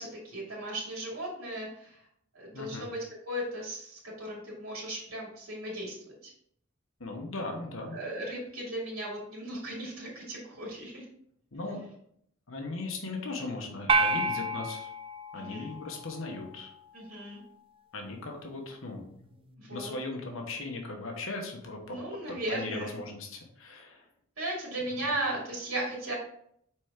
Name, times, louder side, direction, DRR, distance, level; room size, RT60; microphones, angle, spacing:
voice 1, 0.0-2.0 2.3-6.0 6.2-6.3 7.9-11.1 15.3-15.7 16.9-17.4 19.6-19.9 21.8-23.0 24.4-26.1, right 1 dB, 80° right, -4 dB, 2.5 m, -36 dB
voice 2, 2.5-2.9 7.0-8.0 11.5-11.8 12.5-14.9 15.3-16.7 17.9-22.0 22.3-24.1, left 2 dB, 70° left, 2 dB, 1.2 m, -38 dB
sound 1, 13.9-16.4, right 3 dB, 25° right, 0.3 m, -29 dB
6.0 x 4.5 x 3.7 m, 0.69 s
head